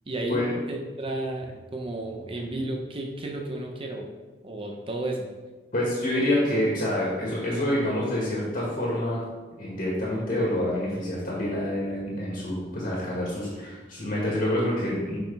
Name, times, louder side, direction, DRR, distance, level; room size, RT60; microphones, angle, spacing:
voice 1, 0.1-4.1 4.4-5.3, right 2 dB, 30° right, 1 dB, 0.7 m, -32 dB
voice 2, 5.7-9.2 9.6-15.2, left 1 dB, 50° left, -6 dB, 1.7 m, -27 dB
6.3 x 6.1 x 3.4 m, 1.3 s
head